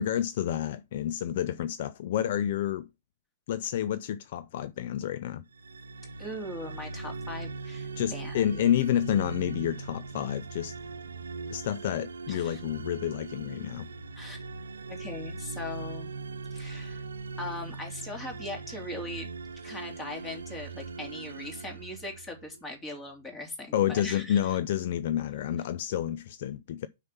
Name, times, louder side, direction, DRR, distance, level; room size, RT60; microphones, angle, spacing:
voice 1, 0.0-2.9 3.5-5.4 8.0-10.8 11.5-13.9 23.7-26.9, left 10 dB, 55° left, 0.5 m, -29 dB
sound 1, 5.5-22.6, right 3 dB, 75° right, 0.6 m, -40 dB
voice 2, 6.2-8.6 12.3-12.6 14.2-14.4 14.9-16.1 16.5-17.0 17.4-19.3 19.6-24.6, left 2 dB, 15° left, 3.0 m, -40 dB
6.3 x 5.8 x 7.1 m
figure-of-eight pair, 110°, 0 cm